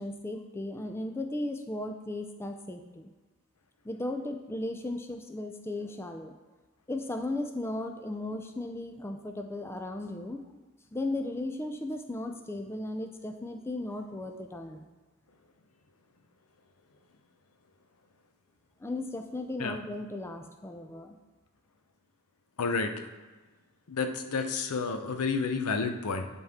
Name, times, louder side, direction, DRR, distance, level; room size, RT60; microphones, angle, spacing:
voice 1, 0.0-3.1 3.8-6.3 6.9-10.6 10.9-14.9 18.8-21.2, left 2 dB, 10° left, 5 dB, 0.3 m, -36 dB
voice 2, 22.6-22.9 23.9-26.3, left 4 dB, 85° left, 7 dB, 0.7 m, -30 dB
11.0 x 4.2 x 3.6 m, 1.3 s
head